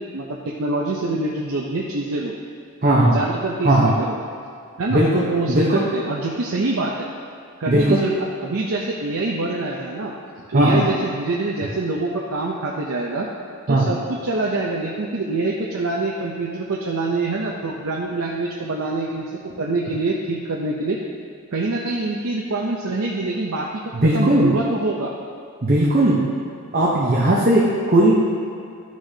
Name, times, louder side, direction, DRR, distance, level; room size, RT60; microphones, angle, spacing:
voice 1, 0.0-2.3 3.1-4.2 4.8-7.1 7.6-8.1 8.4-10.1 10.5-13.3 13.7-21.0 21.5-23.7 24.1-25.1, right 2 dB, 65° right, -2 dB, 0.6 m, -25 dB
voice 2, 2.8-3.2 3.6-3.9 4.9-5.8 7.7-8.0 10.5-10.8 13.7-13.9 23.9-24.5 25.6-26.2 26.7-28.2, right 1 dB, 40° right, -5 dB, 0.9 m, -17 dB
11.5 x 6.2 x 2.8 m, 2.5 s
head